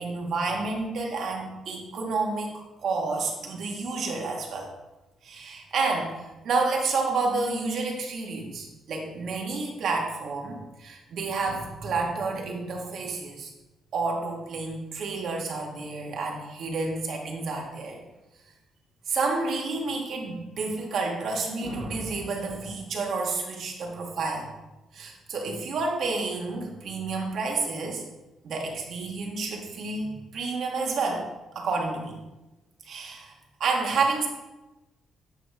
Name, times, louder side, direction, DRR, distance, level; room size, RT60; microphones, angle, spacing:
voice 1, 0.0-2.5 2.8-4.7 5.2-13.5 13.9-18.0 19.1-24.5 24.9-28.0 28.4-31.2 31.5-32.2 32.8-33.3 33.6-34.3, right 3 dB, 65° right, 1 dB, 1.3 m, -30 dB
8.5 x 3.1 x 4.8 m, 1.1 s
cardioid pair, 90°, 0 cm